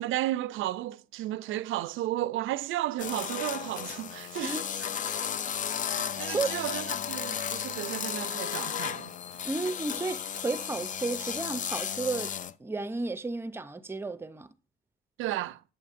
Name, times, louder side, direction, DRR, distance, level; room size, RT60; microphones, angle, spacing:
voice 1, 0.0-4.6 6.2-9.1 15.2-15.6, right 15 dB, 85° right, 0.4 m, -33 dB
sound 1, 3.0-12.5, left 8 dB, 40° left, 0.4 m, -34 dB
sound 2, 6.8-11.7, left 7 dB, 80° left, 1.4 m, -50 dB
voice 2, 9.4-12.3 12.6-14.5, right 3 dB, 10° right, 0.5 m, -32 dB
8.9 x 6.9 x 2.5 m
cardioid pair, 90°, 20 cm